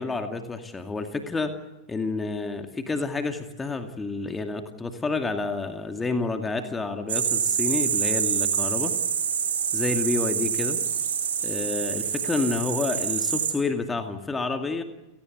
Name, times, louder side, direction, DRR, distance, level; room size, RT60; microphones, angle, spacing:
voice 1, 0.0-1.6 1.9-8.9 9.7-10.8 11.4-14.8, left 3 dB, 15° left, 6 dB, 2.3 m, -29 dB
sound 1, 7.1-13.5, right 7 dB, 65° right, 4.8 m, -26 dB
30.0 x 18.0 x 8.0 m, 1.0 s
figure-of-eight pair, 90°, 0 cm